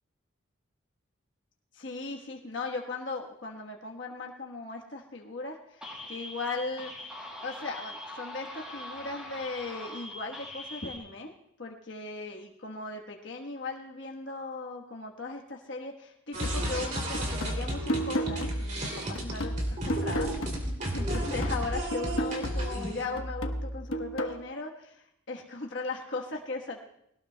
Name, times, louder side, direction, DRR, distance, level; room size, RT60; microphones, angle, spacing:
voice 1, 1.7-6.9 7.4-11.3 11.6-26.8, left 3 dB, 60° left, 0 dB, 1.2 m, -38 dB
sound 1, 5.8-11.0, left 1 dB, 5° right, 5.3 m, -42 dB
sound 2, 16.3-23.0, right 1 dB, 35° right, 2.6 m, -34 dB
sound 3, 16.4-20.9 21.1-24.4, equal, 90° left, 1.1 m, -33 dB
20.5 x 18.0 x 2.2 m, 0.77 s
head